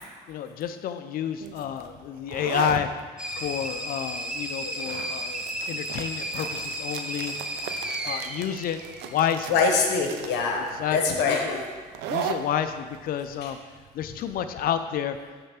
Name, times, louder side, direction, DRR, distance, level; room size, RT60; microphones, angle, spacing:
voice 1, 0.3-2.9 3.4-5.4 5.7-7.3 8.0-8.8 9.1-9.5 10.8-11.6 12.1-13.6 14.0-15.2, left 9 dB, 60° left, 10 dB, 0.4 m, -29 dB
sound 1, 1.4-14.8, right 8 dB, 85° right, 0.5 m, -38 dB
sound 2, 3.2-9.6, right 1 dB, 5° right, 0.6 m, -34 dB
voice 2, 9.5-11.6 13.4-13.5, left 4 dB, 85° left, 2 dB, 0.9 m, -24 dB
6.7 x 3.3 x 5.8 m, 1.5 s
cardioid pair, 110°, 17 cm